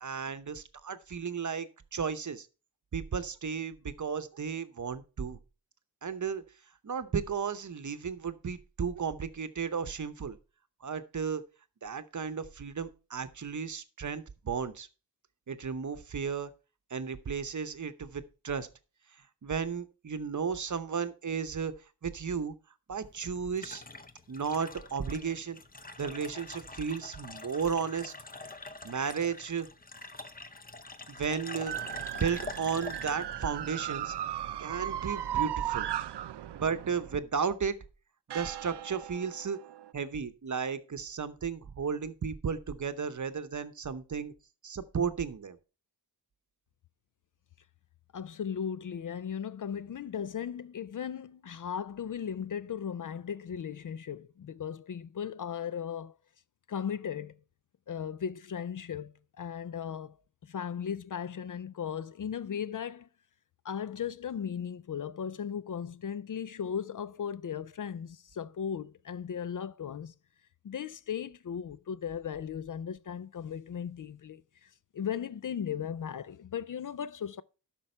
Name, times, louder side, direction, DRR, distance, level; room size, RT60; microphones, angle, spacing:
voice 1, 0.0-2.5 2.9-5.4 6.0-6.4 6.8-10.4 10.8-11.4 11.8-14.9 15.5-16.5 16.9-18.7 19.4-21.7 22.0-22.5 22.9-23.8 24.3-25.6 26.0-28.1 28.8-29.7 31.1-31.7 32.2-34.1 34.6-35.9 36.5-37.8 38.3-39.6 39.9-44.3 44.6-45.6, right 6 dB, 45° right, 0.8 m, -34 dB
sound 1, 22.9-34.7, left 3 dB, 20° left, 0.7 m, -46 dB
sound 2, 31.7-37.2 38.3-39.9, right 12 dB, 80° right, 0.5 m, -36 dB
voice 2, 48.1-56.2 56.7-57.4 57.9-60.2 60.4-63.1 63.6-70.1 70.6-77.4, left 8 dB, 50° left, 0.5 m, -37 dB
12.0 x 6.1 x 4.4 m
wide cardioid pair, 105°, 40 cm